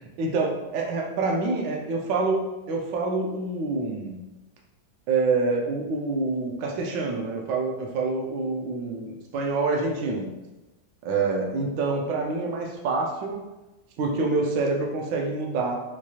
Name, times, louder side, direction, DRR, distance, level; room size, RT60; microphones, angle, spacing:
voice 1, 0.0-4.2 5.1-10.3 11.0-13.4 14.0-15.8, right 3 dB, 75° right, 0 dB, 1.2 m, -26 dB
4.6 x 2.3 x 2.8 m, 1.1 s
omnidirectional pair, 2.1 m